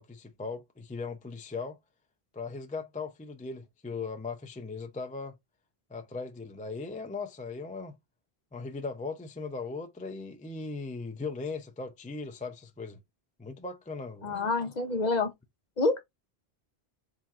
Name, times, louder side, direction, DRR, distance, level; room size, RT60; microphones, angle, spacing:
voice 1, 0.0-1.8 2.3-5.4 5.9-7.9 8.5-13.0 13.4-14.4, left 4 dB, 10° left, 0.4 m, -38 dB
voice 2, 14.2-15.3 15.8-16.0, left 3 dB, 45° left, 0.8 m, -27 dB
4.3 x 3.7 x 2.4 m
omnidirectional pair, 1.1 m